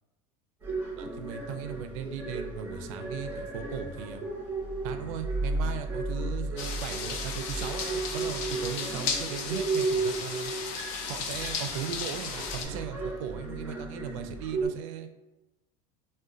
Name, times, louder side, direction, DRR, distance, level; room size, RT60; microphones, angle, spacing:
sound 1, 0.6-14.7, right 3 dB, 10° right, 0.7 m, -34 dB
voice 1, 1.0-4.2 4.8-10.5 11.1-15.1, right 8 dB, 75° right, 8 dB, 0.4 m, -38 dB
sound 2, 6.6-12.7, left 5 dB, 50° left, 0.4 m, -35 dB
2.4 x 2.1 x 3.8 m, 1.0 s
cardioid pair, 175°, 17 cm